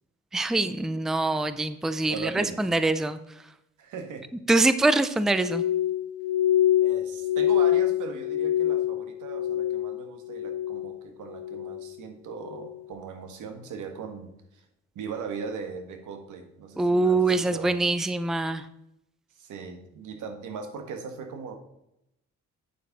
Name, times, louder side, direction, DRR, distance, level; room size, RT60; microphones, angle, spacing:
voice 1, 0.3-3.2 4.5-5.6 16.8-18.6, right 2 dB, ahead, 12 dB, 0.5 m, -24 dB
voice 2, 2.1-2.6 3.8-4.2 6.8-14.6 14.9-17.8 19.4-21.6, right 5 dB, 80° right, 5 dB, 1.7 m, -39 dB
Glass, 5.4-10.0 10.3-10.9 11.3-11.9 12.4-12.7, left 11 dB, 85° left, 0.6 m, -25 dB
8.6 x 7.2 x 4.1 m, 0.83 s
cardioid pair, 90°, 30 cm